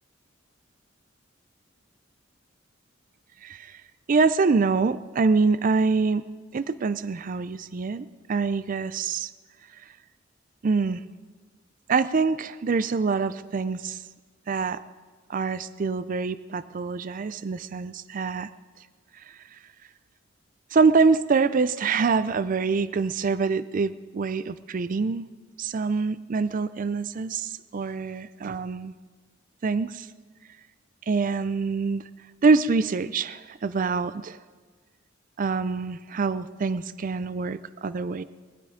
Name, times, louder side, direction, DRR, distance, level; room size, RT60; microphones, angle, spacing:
voice 1, 3.4-3.8 4.1-9.3 9.7-9.8 10.6-11.0 11.9-14.0 14.5-14.8 15.3-18.5 19.1-19.6 20.7-25.3 25.6-28.9 29.6-30.1 31.1-32.0 32.4-34.4 35.4-38.2, right 4 dB, 45° right, 15 dB, 0.4 m, -25 dB
20.0 x 12.0 x 5.1 m, 1.4 s
head